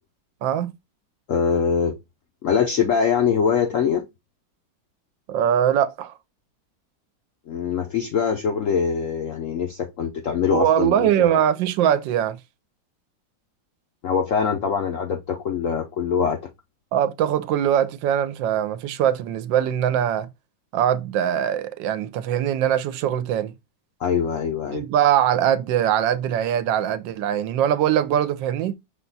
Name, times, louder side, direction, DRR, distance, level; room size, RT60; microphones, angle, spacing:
voice 1, 0.4-0.7 5.3-6.1 10.5-12.4 16.9-20.3 20.7-23.5 24.7-28.8, right 10 dB, 80° right, 1.3 m, -22 dB
voice 2, 1.3-2.0 2.4-4.1 7.5-11.4 14.0-16.5 24.0-24.8, left 6 dB, 70° left, 0.7 m, -23 dB
5.7 x 2.3 x 3.8 m
omnidirectional pair, 2.0 m